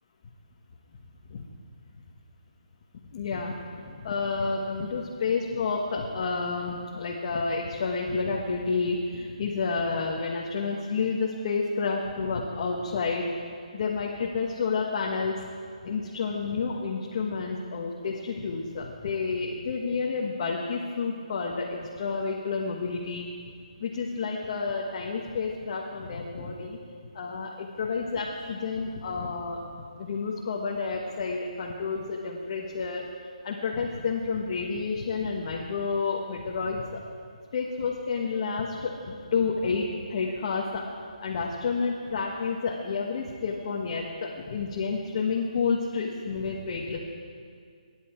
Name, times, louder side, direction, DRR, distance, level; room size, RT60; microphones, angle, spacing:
voice 1, 3.1-13.2 13.7-15.3 15.8-23.3 23.8-26.8 27.1-29.6 30.0-33.0 33.4-37.0 37.5-40.8 41.2-47.0, left 4 dB, 40° left, -2 dB, 1.4 m, -30 dB
20.0 x 10.5 x 4.5 m, 2.2 s
hypercardioid pair, 160°, 4 cm